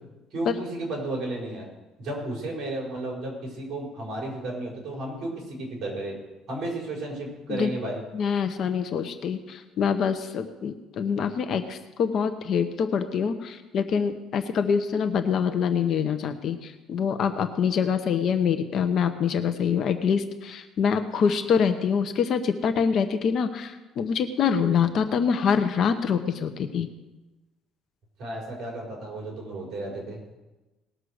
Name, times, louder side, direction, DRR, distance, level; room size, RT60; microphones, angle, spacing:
voice 1, 0.3-1.7 2.0-6.2 6.5-8.0 28.2-30.2, right 2 dB, 45° right, -2 dB, 5.0 m, -33 dB
voice 2, 8.1-26.9, left 6 dB, 45° left, 8 dB, 0.8 m, -25 dB
19.0 x 6.5 x 6.5 m, 1.1 s
cardioid pair, 160°, 0 cm